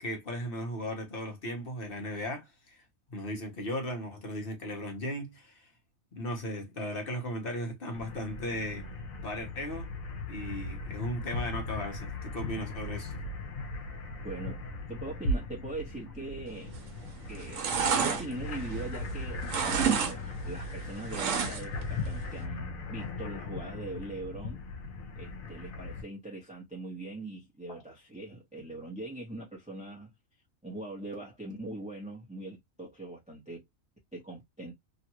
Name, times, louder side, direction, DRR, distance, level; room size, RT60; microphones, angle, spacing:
voice 1, 0.0-2.8 3.1-5.7 6.1-9.9 10.3-13.2 27.7-27.8, left 1 dB, 45° left, 1.1 m, -37 dB
sound 1, 7.9-26.0, left 2 dB, 75° left, 1.2 m, -38 dB
voice 2, 14.2-14.6 14.9-16.7 17.3-17.6 17.9-24.6 25.1-30.1 30.6-33.6 34.1-34.7, right 2 dB, 5° right, 0.9 m, -41 dB
sound 2, 16.7-17.0 17.3-19.1 19.4-20.1 20.4-21.8 22.2-22.3, right 6 dB, 65° right, 1.1 m, -29 dB
3.0 x 2.5 x 2.8 m
omnidirectional pair, 1.4 m